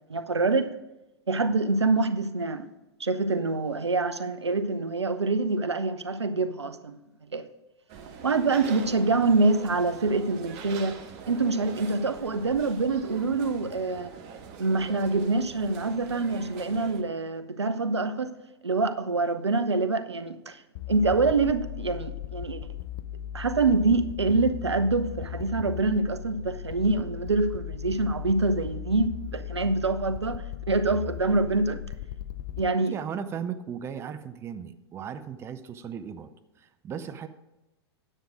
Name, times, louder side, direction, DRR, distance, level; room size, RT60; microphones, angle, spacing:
voice 1, 0.1-0.7 1.3-2.7 3.0-7.0 7.3-7.4 8.2-11.0 11.3-14.1 14.6-18.3 18.6-20.6 20.9-22.6 23.3-31.8 32.6-32.9, right 3 dB, 80° right, 0.6 m, -25 dB
sound 1, 7.9-17.0, right 6 dB, 40° right, 1.3 m, -43 dB
sound 2, 20.8-32.7, left 11 dB, 45° left, 0.4 m, -37 dB
voice 2, 32.9-36.3 36.6-37.3, right 7 dB, 20° right, 0.5 m, -36 dB
9.9 x 7.5 x 4.9 m
figure-of-eight pair, 100°, 14 cm